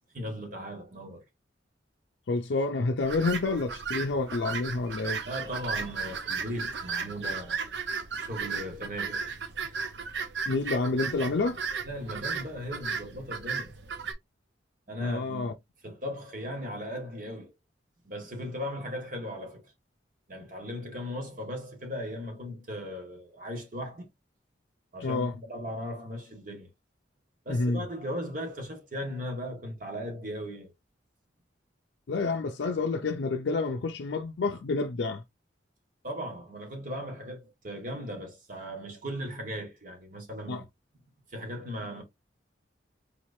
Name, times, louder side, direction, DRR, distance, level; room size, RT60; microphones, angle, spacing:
voice 1, 0.1-1.2 5.3-7.7 8.2-9.3 9.6-9.8 11.9-13.7 14.9-15.5 15.8-17.5 18.0-19.7 20.3-24.1 24.9-26.7 27.4-30.7 36.0-40.6 41.3-42.0, equal, 50° right, 1.6 m, -37 dB
voice 2, 2.3-5.2 10.5-11.6 15.0-15.5 25.0-25.3 27.5-27.8 32.1-35.2 40.5-40.6, left 3 dB, 75° left, 0.5 m, -29 dB
sound 1, 3.0-14.1, right 5 dB, 75° right, 0.7 m, -35 dB
5.0 x 3.1 x 2.7 m
head